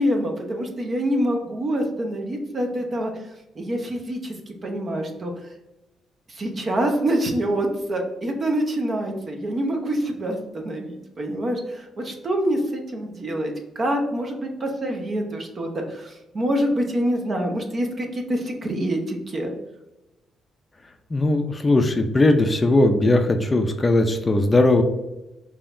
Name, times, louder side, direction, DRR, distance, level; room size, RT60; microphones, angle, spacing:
voice 1, 0.0-3.1 3.5-5.3 6.3-19.5, right 1 dB, 40° right, 2 dB, 0.8 m, -26 dB
voice 2, 21.1-24.8, left 2 dB, 25° left, 6 dB, 0.4 m, -19 dB
4.9 x 2.8 x 2.5 m, 1.0 s
cardioid pair, 90°, 0 cm